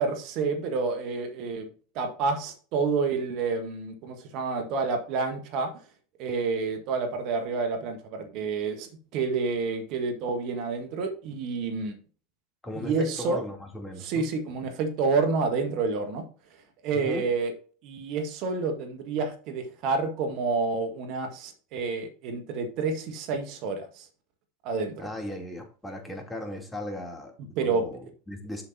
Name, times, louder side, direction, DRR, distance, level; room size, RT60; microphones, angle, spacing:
voice 1, 0.0-1.7 1.9-5.7 6.2-11.9 12.7-13.4 14.0-16.2 16.8-17.5 17.8-24.1 24.6-25.0 27.6-27.9, right 4 dB, 55° right, 6 dB, 1.4 m, -29 dB
voice 2, 12.6-14.3 16.9-17.4 25.0-28.6, left 1 dB, 10° left, 2 dB, 2.8 m, -37 dB
7.4 x 7.2 x 2.7 m, 0.40 s
hypercardioid pair, 85°, 0 cm